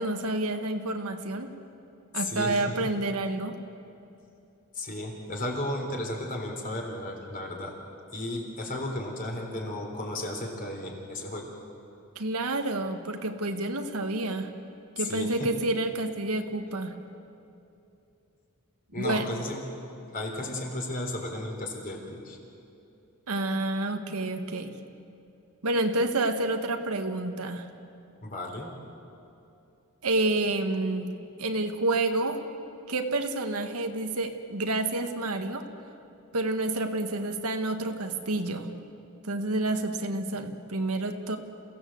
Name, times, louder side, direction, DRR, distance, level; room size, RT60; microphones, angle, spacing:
voice 1, 0.0-1.5 2.1-3.6 12.1-14.5 15.0-17.0 18.9-19.4 23.3-24.8 25.6-27.7 30.0-32.4 32.9-35.7 36.3-38.7 39.2-41.4, right 2 dB, 85° right, 6 dB, 1.6 m, -29 dB
voice 2, 2.1-2.7 4.8-7.7 8.1-11.5 15.0-15.5 18.9-19.6 20.1-22.4 28.2-28.7, left 1 dB, 40° left, 1 dB, 3.8 m, -34 dB
28.5 x 16.5 x 7.8 m, 2.8 s
head